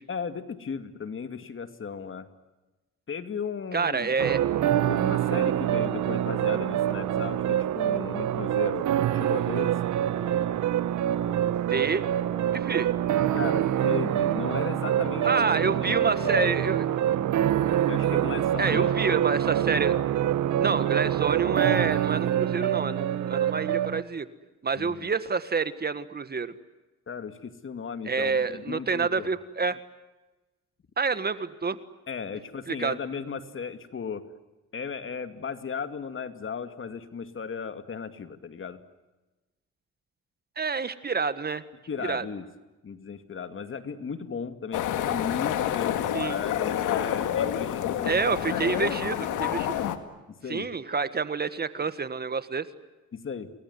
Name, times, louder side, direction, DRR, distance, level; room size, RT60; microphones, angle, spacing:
voice 1, 0.1-2.3 3.1-4.1 4.9-9.8 13.3-16.6 17.9-19.0 24.8-25.1 27.1-29.3 32.1-34.2 34.7-38.8 41.9-42.4 42.8-48.1 48.5-48.7 50.4-50.7 53.1-53.5, left 6 dB, 40° left, 9 dB, 2.4 m, -36 dB
voice 2, 3.7-4.4 11.7-12.0 12.5-12.9 15.2-16.8 18.6-20.0 20.6-24.3 24.6-26.5 28.1-29.8 31.0-31.8 32.7-33.0 40.6-41.6 42.0-42.3 46.1-46.4 48.0-49.8 50.5-52.7, right 5 dB, 30° right, 13 dB, 1.6 m, -28 dB
sound 1, 4.2-24.0, right 11 dB, 75° right, 1.3 m, -25 dB
sound 2, 14.0-14.6 15.0-17.3 17.7-19.3, left 7 dB, 65° left, 5.4 m, -47 dB
sound 3, 44.7-50.0, left 10 dB, 85° left, 2.2 m, -28 dB
28.5 x 21.0 x 9.4 m, 1.1 s
cardioid pair, 90°, 30 cm